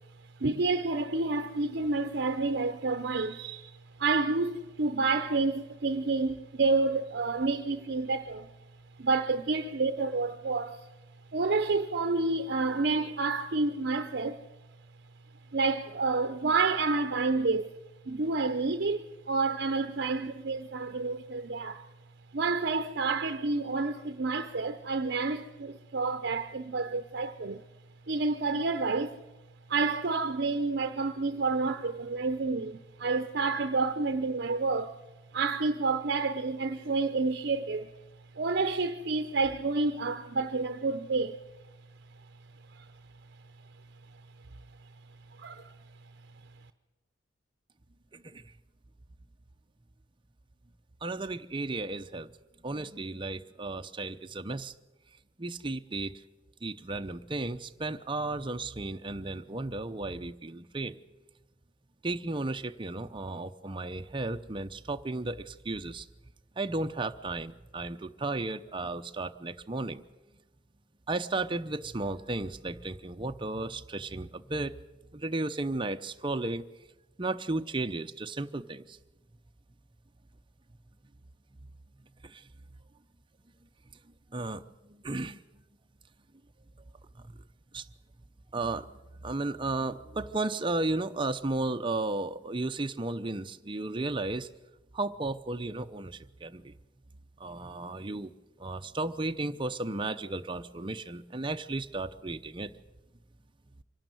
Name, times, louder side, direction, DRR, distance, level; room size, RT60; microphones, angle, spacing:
voice 1, 0.4-3.7 4.0-8.5 9.0-10.8 11.3-14.4 15.5-17.7 18.1-21.8 22.3-27.6 28.1-29.2 29.7-35.0 35.3-37.9 38.4-41.4 42.8-42.9 45.4-45.7, right 3 dB, 60° right, 0.7 m, -29 dB
voice 2, 48.1-48.5 51.0-52.3 52.6-54.7 55.4-56.1 56.6-61.0 62.0-66.1 66.6-70.0 71.1-74.7 75.1-76.6 77.2-79.0 82.2-82.5 84.3-85.4 87.3-87.4 87.7-87.9 88.5-88.9 89.2-94.5 94.9-96.7 97.4-98.3 98.6-102.7, right 2 dB, 25° right, 0.7 m, -34 dB
25.5 x 12.0 x 9.2 m
head